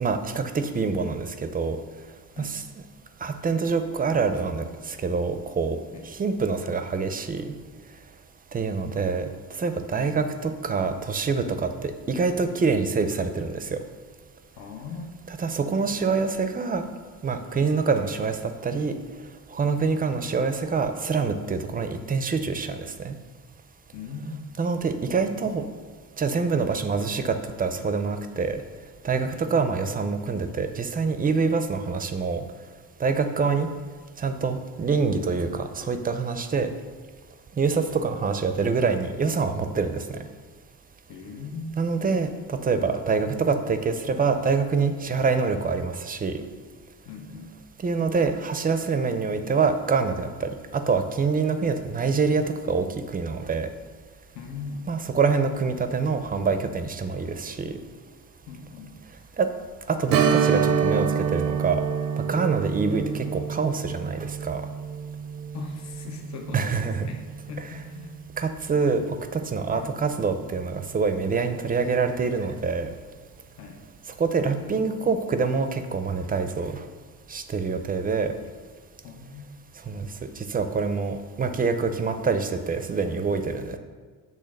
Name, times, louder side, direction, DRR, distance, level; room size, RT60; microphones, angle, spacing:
voice 1, 0.0-1.8 2.4-2.6 3.2-5.8 6.1-7.5 8.5-9.3 9.6-13.8 15.3-16.8 17.2-19.0 19.5-23.1 24.6-25.6 26.2-28.6 29.0-32.4 33.0-33.7 34.2-36.7 37.6-40.2 41.8-46.3 47.8-52.9 53.1-53.7 54.9-57.7 59.4-59.5 59.9-61.8 62.2-64.6 66.5-67.1 67.6-67.8 68.4-69.0 69.3-72.9 74.2-76.8 77.3-78.3 79.9-83.8, right 4 dB, 25° right, 9 dB, 0.5 m, -26 dB
voice 2, 14.6-15.3 23.9-24.4 29.3-29.5 41.1-41.8 47.1-47.5 54.3-54.9 58.5-59.0 65.5-67.2 67.5-68.2 69.7-69.9 73.6-73.8 79.0-79.5, left 4 dB, 55° left, 2 dB, 0.8 m, -39 dB
Strum, 60.1-69.3 69.6-69.7 72.3-72.4 72.9-73.0, right 7 dB, 85° right, 0.7 m, -28 dB
8.2 x 3.6 x 6.4 m, 1.5 s
cardioid pair, 135°, 33 cm